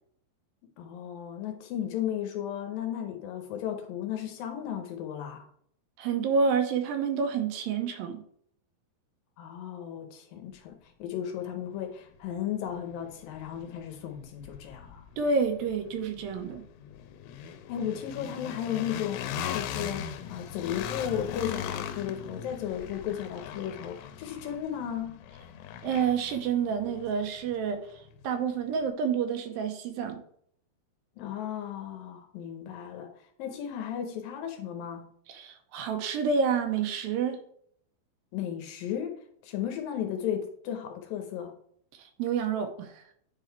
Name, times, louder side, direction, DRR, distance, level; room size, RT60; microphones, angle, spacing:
voice 1, 0.8-5.5 9.4-15.1 17.7-19.2 19.5-25.2 31.2-33.1 33.4-35.1 38.3-39.1 39.4-41.6, left 9 dB, 75° left, 5 dB, 2.4 m, -35 dB
voice 2, 6.0-8.2 15.2-16.6 25.8-30.2 35.3-37.4 41.9-43.0, right 5 dB, 75° right, 6 dB, 2.4 m, -29 dB
sound 1, 11.8-11.9 12.3-28.3, left 9 dB, 90° left, 2.6 m, -40 dB
10.0 x 3.8 x 4.5 m, 0.66 s
omnidirectional pair, 4.4 m